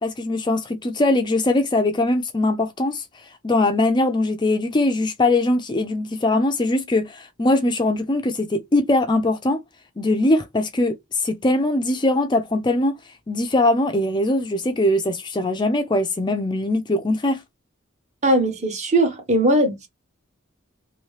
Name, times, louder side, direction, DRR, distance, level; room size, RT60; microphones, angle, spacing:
voice 1, 0.0-3.0 3.4-9.6 10.0-12.9 13.3-17.4, left 2 dB, 20° left, 0.4 m, -21 dB
voice 2, 18.2-19.9, right 1 dB, 35° right, 1.0 m, -19 dB
2.8 x 2.7 x 3.1 m
head